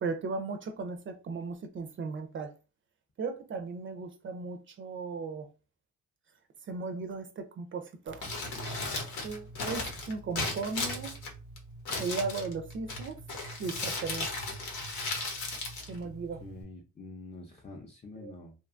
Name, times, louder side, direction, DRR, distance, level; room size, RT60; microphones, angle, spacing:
voice 1, 0.0-2.5 3.2-5.5 6.7-8.2 9.2-11.1 12.0-13.2 13.6-14.3 15.9-16.4 18.2-18.3, right 4 dB, 40° right, 0.4 m, -36 dB
Crumpling crinkling, 8.1-16.6, left 2 dB, 75° left, 0.9 m, -36 dB
voice 2, 16.4-18.5, left 2 dB, 20° left, 0.5 m, -46 dB
2.7 x 2.2 x 2.5 m
cardioid pair, 90°, 30 cm